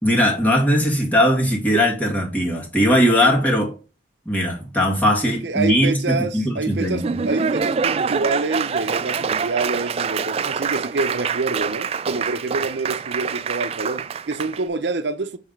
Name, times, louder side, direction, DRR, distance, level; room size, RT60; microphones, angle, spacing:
voice 1, 0.0-3.7 4.3-7.2, equal, 10° left, 2.0 m, -19 dB
voice 2, 5.2-15.4, right 3 dB, 80° right, 0.7 m, -26 dB
Laughter / Applause, 6.7-14.6, right 6 dB, 35° right, 0.3 m, -25 dB
7.0 x 3.3 x 5.4 m
head